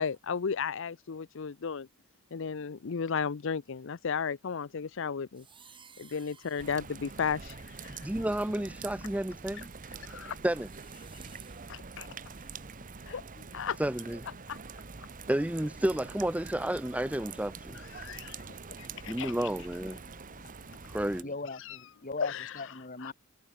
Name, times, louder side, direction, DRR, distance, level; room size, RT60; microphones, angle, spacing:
voice 1, 0.0-1.9 2.3-5.4 6.0-8.1 10.0-10.4 11.7-12.1 13.1-13.2 13.5-13.8 14.5-14.6 17.7-18.4 18.8-19.5 21.6-21.8 22.2-22.5 23.0-23.1, left 6 dB, 65° left, 0.6 m, -34 dB
sound 1, 5.3-8.3 8.9-12.8, right 6 dB, 25° right, 6.9 m, -59 dB
sound 2, 6.6-21.2, right 4 dB, 40° right, 1.0 m, -45 dB
voice 2, 8.0-9.7 10.4-10.7 13.8-14.2 15.3-17.8 19.1-20.0 20.9-21.3, right 1 dB, 5° right, 0.6 m, -31 dB
voice 3, 21.2-23.1, left 3 dB, 40° left, 2.9 m, -39 dB
head